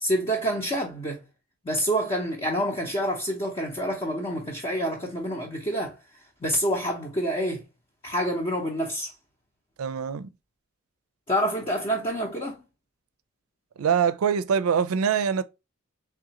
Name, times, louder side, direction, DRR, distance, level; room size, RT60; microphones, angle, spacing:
voice 1, 0.0-1.2 1.6-6.0 6.4-7.6 8.0-9.1 11.3-12.6, equal, 25° left, 0.6 m, -27 dB
voice 2, 9.8-10.3 13.8-15.4, right 7 dB, 85° right, 0.4 m, -24 dB
3.7 x 3.4 x 2.8 m
head